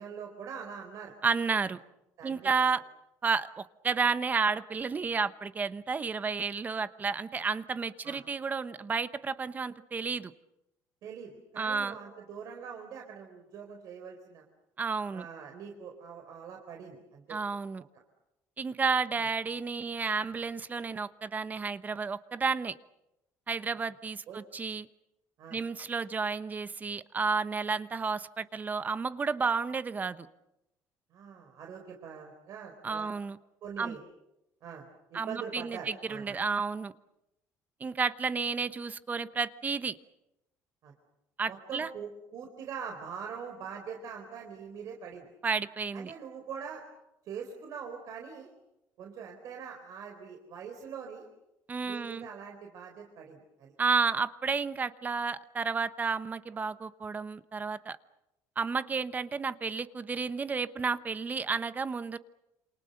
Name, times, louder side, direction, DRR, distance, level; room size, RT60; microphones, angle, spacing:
voice 1, 0.0-1.1 2.2-2.7 8.0-8.2 11.0-14.4 15.1-17.4 17.8-17.9 19.1-19.3 24.3-24.4 25.4-25.6 31.1-33.1 33.6-34.0 34.6-36.4 40.8-40.9 41.5-45.3 45.9-46.8 47.2-48.5 49.0-51.3 51.8-53.7, right 6 dB, 60° right, 2 dB, 4.1 m, -43 dB
voice 2, 1.2-1.8 2.2-2.8 3.2-10.3 11.6-12.0 14.8-15.2 17.3-17.8 18.6-22.7 23.5-24.9 25.5-30.3 32.8-33.4 33.8-34.0 35.1-36.9 37.8-40.0 41.4-41.9 45.4-46.1 51.7-52.3 53.8-58.0 58.6-62.2, right 5 dB, 25° right, 13 dB, 1.0 m, -31 dB
28.0 x 26.5 x 6.6 m, 0.89 s
cardioid pair, 125°, 7 cm